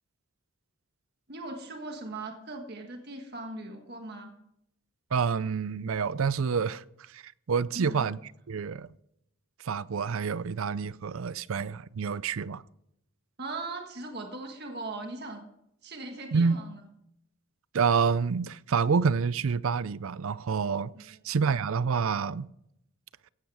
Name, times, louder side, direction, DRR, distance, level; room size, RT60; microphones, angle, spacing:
voice 1, 1.3-4.3 7.7-8.1 13.4-15.4 15.8-16.8 20.9-21.1, right 2 dB, 50° right, 1.5 m, -39 dB
voice 2, 5.1-8.2 8.5-8.9 9.6-12.6 16.3-16.6 17.7-22.5, right 5 dB, 70° right, 0.5 m, -28 dB
16.0 x 11.5 x 4.8 m
head